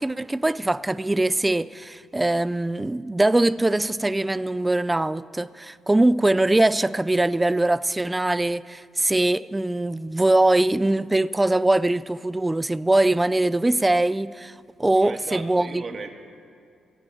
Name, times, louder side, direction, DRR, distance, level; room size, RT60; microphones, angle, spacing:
voice 1, 0.0-14.5 14.8-15.7, right 2 dB, 15° right, 0.3 m, -22 dB
voice 2, 14.9-16.1, right 4 dB, 45° right, 1.5 m, -36 dB
18.0 x 14.0 x 4.5 m
cardioid pair, 90°, 0 cm